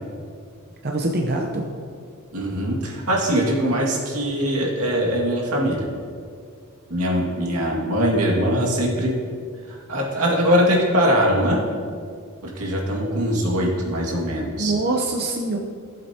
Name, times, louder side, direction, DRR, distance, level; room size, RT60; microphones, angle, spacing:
voice 1, 0.8-1.7 14.6-15.6, right 2 dB, 45° right, 1 dB, 0.7 m, -24 dB
voice 2, 2.3-5.9 6.9-9.2 9.7-11.6 12.4-14.7, equal, 85° right, -2 dB, 2.0 m, -22 dB
16.0 x 7.7 x 2.8 m, 2.2 s
head